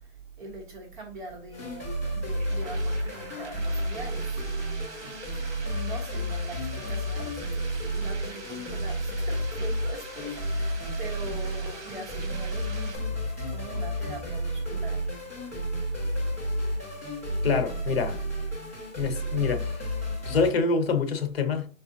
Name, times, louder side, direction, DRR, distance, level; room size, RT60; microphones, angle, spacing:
voice 1, 0.4-15.1, right 3 dB, 40° right, 1.2 m, -42 dB
sound 1, 1.5-20.5, equal, 10° left, 0.4 m, -31 dB
sound 2, 2.0-13.0, right 4 dB, 60° right, 1.6 m, -45 dB
voice 2, 17.4-18.2 19.0-19.9 20.2-21.7, left 5 dB, 50° left, 1.0 m, -26 dB
5.1 x 3.9 x 2.6 m
hypercardioid pair, 165°, 39 cm